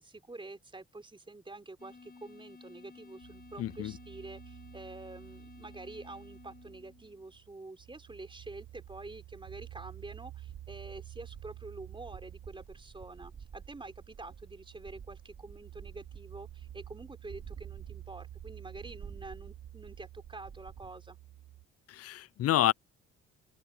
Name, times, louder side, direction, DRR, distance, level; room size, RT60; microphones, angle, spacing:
voice 1, 0.0-21.2, right 2 dB, 15° right, 3.9 m, -47 dB
sound 1, 1.8-7.3, left 4 dB, 30° left, 5.3 m, -54 dB
sound 2, 3.2-21.6, right 14 dB, 85° right, 6.9 m, -51 dB
voice 2, 3.6-3.9 21.9-22.7, left 13 dB, 55° left, 0.4 m, -28 dB
sound 3, 8.6-20.9, right 6 dB, 45° right, 4.1 m, -51 dB
open air
cardioid pair, 90°, 30 cm